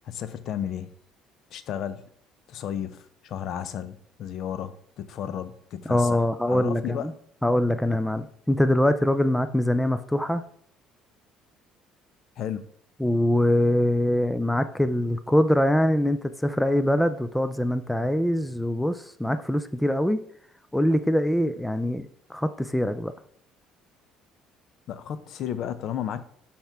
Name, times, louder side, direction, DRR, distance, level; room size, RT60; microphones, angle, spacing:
voice 1, 0.0-0.9 1.5-2.0 2.5-7.1 12.4-12.7 24.9-26.2, left 9 dB, 55° left, 0.6 m, -33 dB
voice 2, 5.9-7.1 7.4-10.4 13.0-20.2 20.7-23.1, left 1 dB, 5° left, 0.4 m, -23 dB
11.5 x 4.3 x 3.6 m
cardioid pair, 120°, 0 cm